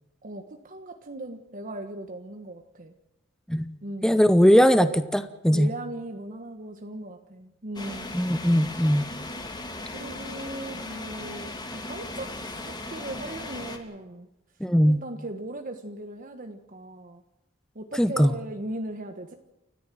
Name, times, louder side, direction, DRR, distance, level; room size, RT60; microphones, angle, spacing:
voice 1, 0.2-2.9 3.8-4.2 5.5-8.2 9.9-12.3 12.6-14.3 14.9-17.2 17.7-19.4, right 1 dB, 45° right, 6 dB, 1.4 m, -38 dB
voice 2, 4.0-5.7 8.1-9.0 14.6-15.0 18.0-18.3, equal, 5° left, 11 dB, 0.8 m, -20 dB
sound 1, 7.8-13.8, left 2 dB, 20° left, 2.6 m, -37 dB
30.0 x 14.0 x 7.6 m, 0.99 s
head